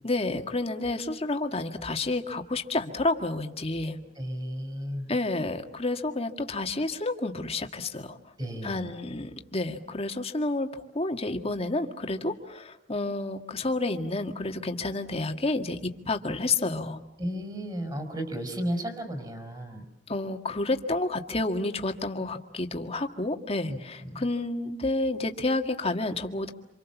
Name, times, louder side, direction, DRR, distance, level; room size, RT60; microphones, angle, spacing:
voice 1, 0.0-4.0 5.1-8.2 8.6-15.8 16.1-17.0 20.1-26.5, left 2 dB, 35° left, 5 dB, 1.8 m, -30 dB
voice 2, 4.1-5.1 8.4-8.9 17.2-19.9 23.7-24.3, equal, 25° right, 6 dB, 5.1 m, -34 dB
27.5 x 27.0 x 7.2 m, 0.79 s
head